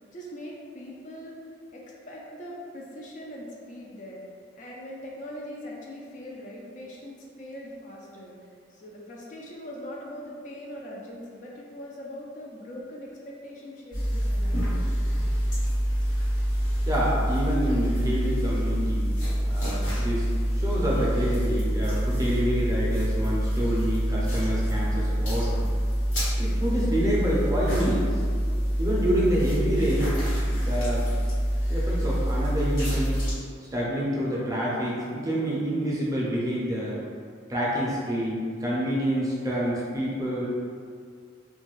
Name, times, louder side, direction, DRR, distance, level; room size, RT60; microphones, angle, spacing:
voice 1, 0.1-1.4 1.7-4.2 4.6-14.9, equal, 40° left, -3 dB, 0.4 m, -41 dB
sound 1, 13.9-33.3, equal, 80° left, 1.2 m, -26 dB
voice 2, 16.9-19.1 19.5-25.6 26.4-28.1 28.8-30.2 30.5-31.1 31.7-33.2 33.7-37.0 37.5-40.5, equal, 20° right, -6 dB, 0.5 m, -28 dB
2.6 x 2.4 x 3.0 m, 2.1 s
head